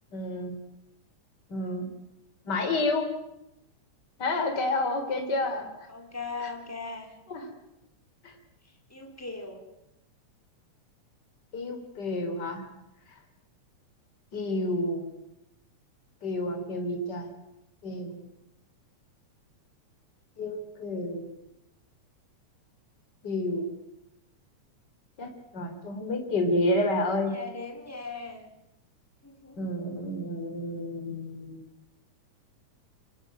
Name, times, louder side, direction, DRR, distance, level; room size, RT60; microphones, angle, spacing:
voice 1, 0.1-0.6 1.5-1.9 2.4-3.1 4.2-5.9 6.4-6.5 7.3-7.4 8.2-8.3 11.5-12.6 14.3-15.0 16.2-17.3 17.8-18.2 20.4-21.2 23.2-23.7 25.2-27.3 29.6-31.6, left 2 dB, 35° left, 5 dB, 4.2 m, -30 dB
voice 2, 5.9-7.2 8.6-9.6 27.1-28.5 29.2-29.7, left 4 dB, 5° left, 3 dB, 4.1 m, -39 dB
26.5 x 19.5 x 9.3 m, 0.87 s
omnidirectional pair, 3.3 m